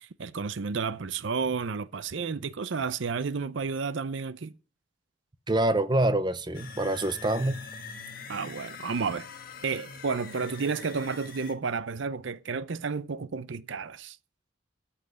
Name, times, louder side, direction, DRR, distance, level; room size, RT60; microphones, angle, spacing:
voice 1, 0.0-4.5 8.3-9.3 9.6-14.2, right 5 dB, 60° right, 0.6 m, -31 dB
voice 2, 5.5-7.7, right 1 dB, 20° right, 0.6 m, -26 dB
sound 1, 6.5-11.5, left 4 dB, 45° left, 1.6 m, -43 dB
13.5 x 5.7 x 7.9 m
head